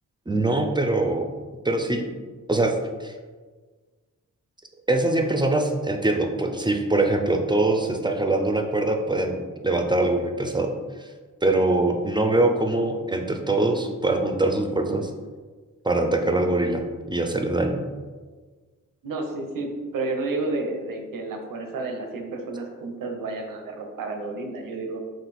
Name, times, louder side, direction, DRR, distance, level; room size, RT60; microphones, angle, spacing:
voice 1, 0.3-1.3 1.6-2.0 2.5-3.1 4.9-10.8 11.4-15.1 15.8-16.8 17.1-17.8, right 2 dB, 15° right, 3 dB, 0.4 m, -23 dB
voice 2, 19.0-25.0, right 3 dB, 90° right, 4 dB, 0.7 m, -31 dB
3.9 x 2.5 x 4.1 m, 1.4 s
cardioid pair, 80°, 32 cm